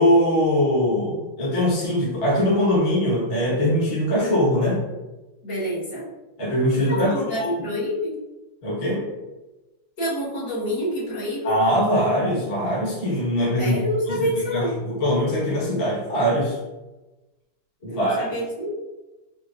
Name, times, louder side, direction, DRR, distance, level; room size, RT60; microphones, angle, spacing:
voice 1, 0.0-4.8 6.4-7.5 8.6-9.0 11.4-13.7 14.1-16.6 17.8-18.2, equal, 35° left, -6 dB, 1.3 m, -22 dB
voice 2, 5.4-6.1 6.9-8.2 10.0-11.5 13.6-14.8 17.9-18.7, equal, 70° left, -9 dB, 2.1 m, -27 dB
6.3 x 2.2 x 2.4 m, 1.1 s
omnidirectional pair, 2.0 m